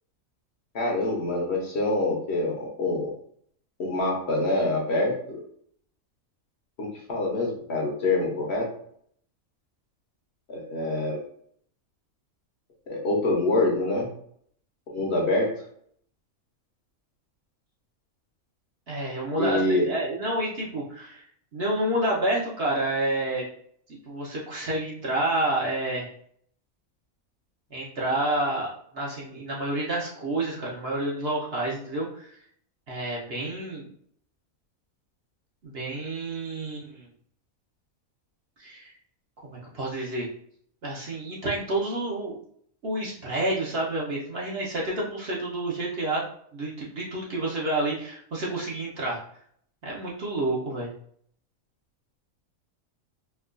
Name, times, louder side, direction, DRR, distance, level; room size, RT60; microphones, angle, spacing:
voice 1, 0.7-3.1 3.8-5.4 6.8-8.7 10.5-11.2 12.9-14.1 14.9-15.5 19.4-19.9, left 2 dB, 55° left, -1 dB, 1.0 m, -26 dB
voice 2, 18.9-21.3 21.5-23.4 23.9-26.1 27.7-28.7 28.9-32.3 32.9-33.9 35.6-37.1 38.6-38.9 39.4-40.3 40.8-42.4 42.8-46.2 46.5-49.2 49.8-50.9, right 1 dB, 50° right, -4 dB, 0.9 m, -29 dB
4.4 x 2.3 x 2.4 m, 0.63 s
omnidirectional pair, 1.5 m